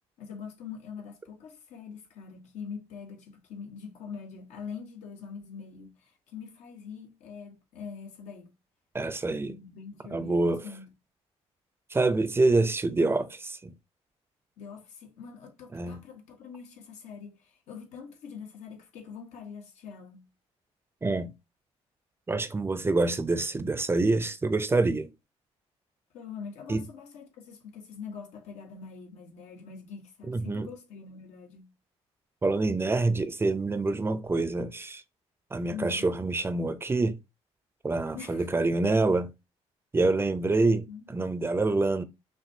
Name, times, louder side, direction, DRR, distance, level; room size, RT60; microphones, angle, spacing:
voice 1, 0.2-8.5 9.5-10.9 14.6-20.3 26.1-31.7 35.7-36.1 38.1-38.5 40.9-41.2, left 6 dB, 85° left, 1.1 m, -44 dB
voice 2, 8.9-9.5 10.1-10.6 11.9-13.7 15.7-16.0 21.0-21.3 22.3-25.1 26.7-26.8 30.3-30.7 32.4-35.0 35.5-37.2 37.8-39.3 39.9-42.0, right 3 dB, 20° right, 0.5 m, -26 dB
5.8 x 2.3 x 2.7 m
cardioid pair, 95°, 12 cm